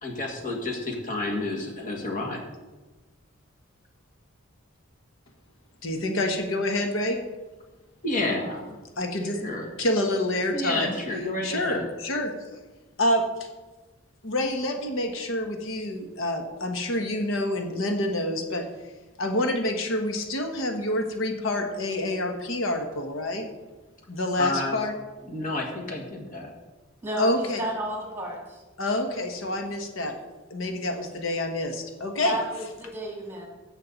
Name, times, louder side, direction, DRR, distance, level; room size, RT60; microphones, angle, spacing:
voice 1, 0.0-2.4 8.0-8.8 9.4-9.7 10.5-11.9 24.4-24.8 25.3-26.5, left 2 dB, 40° left, 1 dB, 1.9 m, -30 dB
voice 2, 5.8-7.2 9.0-9.4 9.8-10.9 11.4-12.3 13.0-13.5 14.2-18.7 19.2-23.5 24.1-24.9 27.2-27.6 28.8-30.2 30.5-32.4, left 1 dB, 75° left, 4 dB, 1.2 m, -27 dB
voice 3, 27.0-28.6 32.2-33.5, right 1 dB, 10° right, -1 dB, 2.3 m, -32 dB
16.0 x 6.5 x 4.1 m, 1.2 s
head